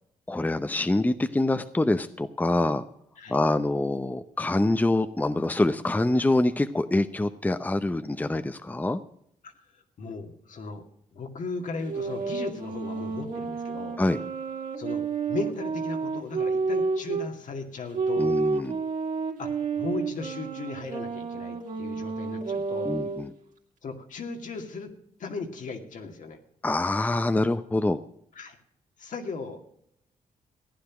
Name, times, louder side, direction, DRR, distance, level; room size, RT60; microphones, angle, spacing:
voice 1, 0.3-2.8 3.3-9.0 14.0-14.2 18.2-18.8 22.8-23.3 26.6-28.0, left 2 dB, 10° left, 11 dB, 0.7 m, -25 dB
voice 2, 10.0-10.8 11.1-14.0 14.8-18.4 19.4-19.5 19.8-23.0 23.8-24.9 25.2-26.4 28.3-28.6 29.0-29.7, left 4 dB, 65° left, 4 dB, 2.2 m, -37 dB
sound 1, 11.8-17.3 17.9-23.3, right 4 dB, 70° right, 2.7 m, -30 dB
15.0 x 10.0 x 6.1 m, 0.73 s
cardioid pair, 80°, 14 cm